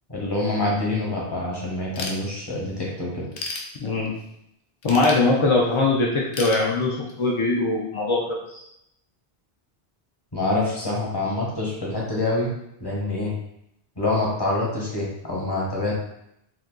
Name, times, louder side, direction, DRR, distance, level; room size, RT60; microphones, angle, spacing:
voice 1, 0.1-3.2 10.3-12.5 12.8-13.3 14.0-15.9, left 2 dB, 25° left, -4 dB, 0.9 m, -26 dB
Ratchet pawl / Tools, 2.0-2.7 3.1-4.3 4.8-5.8 6.3-7.3, left 3 dB, 75° left, 0.8 m, -34 dB
voice 2, 3.8-4.1 4.8-8.6, left 3 dB, 55° left, -4 dB, 0.3 m, -22 dB
2.7 x 2.6 x 3.6 m, 0.79 s
omnidirectional pair, 1.0 m